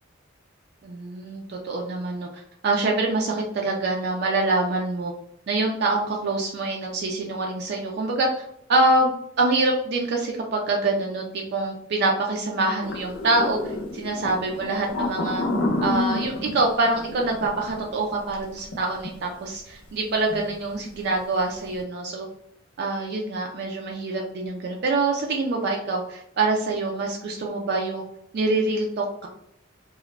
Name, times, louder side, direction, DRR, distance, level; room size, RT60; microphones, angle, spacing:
voice 1, 0.8-5.1 5.5-8.3 8.7-9.1 9.4-13.6 13.9-15.4 15.8-22.3 22.8-28.0 28.3-29.3, right 2 dB, 55° right, 0 dB, 0.3 m, -25 dB
sound 1, 12.8-18.7 19.0-19.1 20.3-20.5 20.8-21.1, left 2 dB, 65° left, 0.6 m, -29 dB
2.4 x 2.1 x 3.0 m, 0.74 s
head